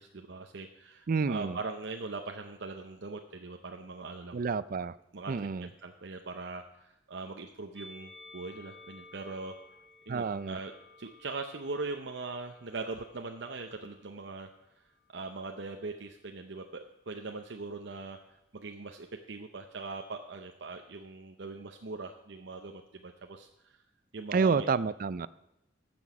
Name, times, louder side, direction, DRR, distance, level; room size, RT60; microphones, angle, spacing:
voice 1, 0.0-4.4 5.1-9.6 10.1-10.7 11.0-14.5 15.1-18.2 18.5-23.8 24.1-24.7, right 3 dB, 65° right, 4 dB, 0.8 m, -41 dB
voice 2, 1.1-1.6 4.3-4.9 5.3-5.7 10.1-10.6 24.3-25.3, right 5 dB, 50° right, 16 dB, 0.4 m, -29 dB
Musical instrument, 7.7-14.2 15.0-16.0, left 2 dB, 5° left, 3.6 m, -55 dB
14.5 x 6.2 x 6.1 m, 0.89 s
head